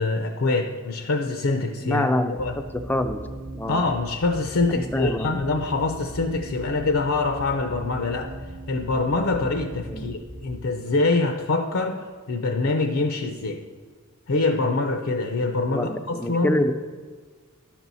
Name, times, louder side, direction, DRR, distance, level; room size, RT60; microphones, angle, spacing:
voice 1, 0.0-2.6 3.7-8.3 8.7-13.6 14.3-16.6, left 3 dB, 70° left, 6 dB, 0.6 m, -25 dB
voice 2, 1.8-2.3 2.7-3.3 3.5-3.8 4.8-5.3 9.9-10.1 15.7-16.7, left 1 dB, 10° left, 8 dB, 0.4 m, -25 dB
sound 1, 2.4-10.5, right 1 dB, 30° right, 0.9 m, -39 dB
11.0 x 6.1 x 4.0 m, 1.5 s
head